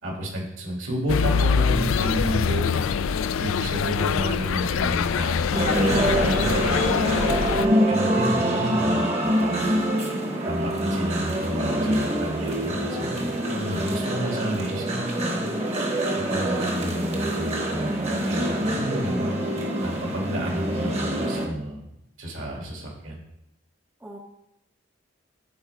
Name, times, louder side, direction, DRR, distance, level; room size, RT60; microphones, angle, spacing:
voice 1, 0.0-2.7 3.4-7.4 7.9-9.6 10.4-15.4 16.2-19.4 19.7-21.8 22.2-23.2, equal, 70° right, -2 dB, 2.5 m, -31 dB
sound 1, 1.1-7.7, left 6 dB, 80° left, 0.3 m, -24 dB
sound 2, 5.5-21.5, right 1 dB, 30° right, 1.1 m, -25 dB
voice 2, 9.6-9.8 14.3-14.5 24.0-24.2, right 1 dB, 10° right, 0 dB, 0.6 m, -41 dB
12.5 x 4.5 x 3.5 m, 0.81 s
head